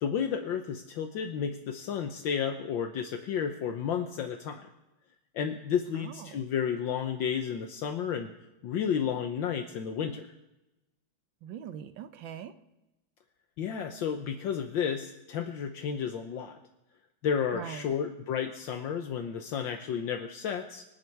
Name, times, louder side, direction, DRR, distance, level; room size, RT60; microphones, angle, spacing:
voice 1, 0.0-4.6 5.3-8.3 8.6-10.3 13.6-16.6 17.2-20.8, left 7 dB, 75° left, 5 dB, 1.6 m, -32 dB
voice 2, 6.0-6.5 11.4-12.5 17.5-17.9, right 9 dB, 75° right, 11 dB, 1.6 m, -42 dB
25.0 x 10.5 x 4.7 m, 0.97 s
omnidirectional pair, 2.1 m